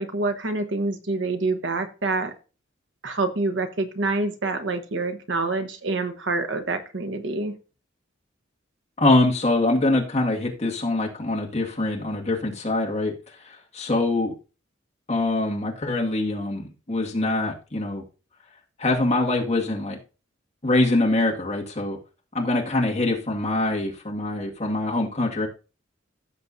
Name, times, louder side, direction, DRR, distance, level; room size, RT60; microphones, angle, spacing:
voice 1, 0.0-2.3 3.0-7.5, right 3 dB, 65° right, 7 dB, 1.2 m, -26 dB
voice 2, 9.0-13.2 13.7-14.3 15.1-18.0 18.8-20.0 20.6-22.0 22.3-25.5, left 2 dB, 35° left, -1 dB, 2.1 m, -24 dB
15.5 x 6.9 x 2.7 m, 0.33 s
head